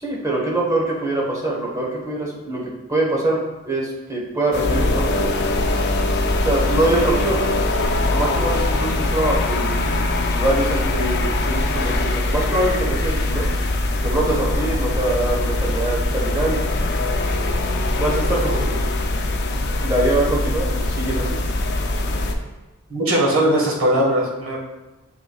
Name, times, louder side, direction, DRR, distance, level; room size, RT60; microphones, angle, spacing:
voice 1, 0.0-3.4 3.7-5.3 6.4-7.5 8.1-13.5 14.0-16.6 18.0-18.9 19.8-21.4, right 2 dB, 15° right, -4 dB, 1.3 m, -23 dB
sound 1, 4.5-22.3, left 2 dB, 50° left, 0.6 m, -22 dB
voice 2, 22.9-24.6, right 1 dB, 60° right, -3 dB, 1.6 m, -19 dB
7.2 x 5.6 x 2.4 m, 1.1 s
head